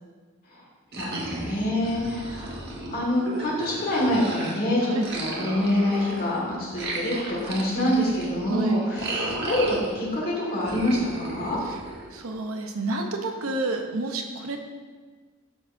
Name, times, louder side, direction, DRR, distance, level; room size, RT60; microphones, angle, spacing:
voice 1, 0.9-2.5 2.9-9.2 9.5-11.6, left 1 dB, 45° left, -5 dB, 2.0 m, -26 dB
sound 1, 0.9-4.6 5.0-10.2 10.6-12.3, right 2 dB, 55° right, 1.3 m, -35 dB
voice 2, 8.4-8.8 12.1-14.6, right 2 dB, 85° right, 4 dB, 0.9 m, -29 dB
12.0 x 6.5 x 2.7 m, 1.5 s
head